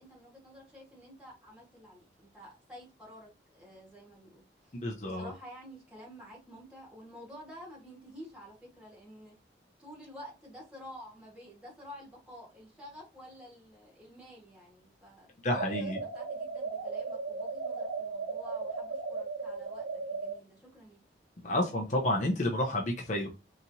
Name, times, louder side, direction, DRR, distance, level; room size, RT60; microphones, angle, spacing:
voice 1, 0.0-4.7 5.1-9.3 9.8-15.3 15.8-21.0, equal, 5° right, -4 dB, 2.0 m, -50 dB
voice 2, 4.7-5.3 15.4-16.0 21.4-23.3, left 1 dB, 45° left, 1 dB, 0.7 m, -30 dB
sound 1, 15.5-20.4, right 4 dB, 85° right, 1.0 m, -36 dB
4.0 x 2.9 x 2.8 m, 0.28 s
head